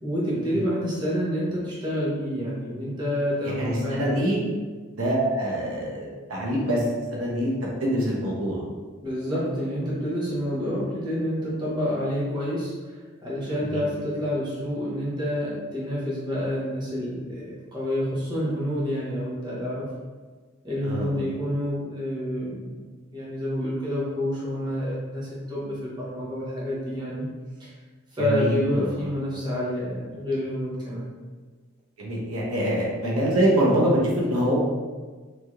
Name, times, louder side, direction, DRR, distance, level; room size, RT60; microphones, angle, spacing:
voice 1, 0.0-4.3 9.0-19.9 20.6-22.8 23.1-27.3 27.6-27.7 28.1-31.1, equal, 20° right, -8 dB, 0.9 m, -28 dB
voice 2, 3.6-4.4 4.9-6.8 7.1-8.6 13.6-13.8 20.8-21.3 28.2-28.9 32.0-34.6, equal, 85° right, -4 dB, 0.8 m, -25 dB
3.1 x 2.8 x 2.3 m, 1.4 s
head